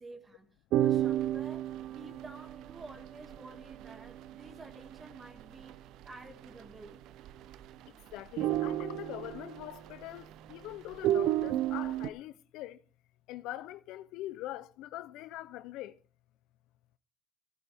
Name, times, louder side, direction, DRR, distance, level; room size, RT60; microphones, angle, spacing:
voice 1, 0.0-7.0, right 2 dB, 30° right, 2.0 m, -51 dB
sound 1, 0.7-5.7 6.0-6.1 6.4-6.9 7.2-7.9 8.2-10.5 10.9-12.1, right 12 dB, 75° right, 0.5 m, -32 dB
voice 2, 8.1-12.8 13.3-16.0, left 15 dB, 85° left, 0.5 m, -43 dB
14.5 x 11.0 x 3.4 m
supercardioid pair, 85°, 0 cm